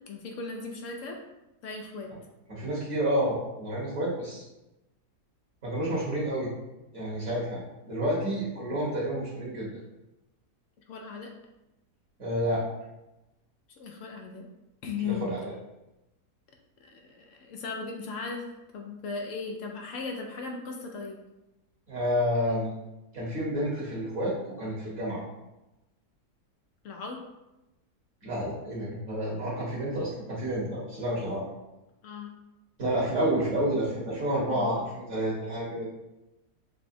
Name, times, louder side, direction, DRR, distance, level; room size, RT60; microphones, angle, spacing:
voice 1, 0.1-1.2 1.6-2.1 10.9-11.3 13.8-14.4 14.8-15.3 16.8-18.4 18.7-21.2 26.8-27.2 32.0-32.4 34.5-34.9, left 5 dB, 70° left, 1 dB, 0.7 m, -37 dB
voice 2, 2.5-4.4 5.6-6.5 6.9-7.6 7.9-9.7 12.2-12.6 15.0-15.5 21.9-22.7 23.1-25.2 28.2-31.4 32.8-35.9, equal, 50° right, -8 dB, 1.5 m, -29 dB
6.2 x 2.2 x 2.6 m, 0.96 s
omnidirectional pair, 1.7 m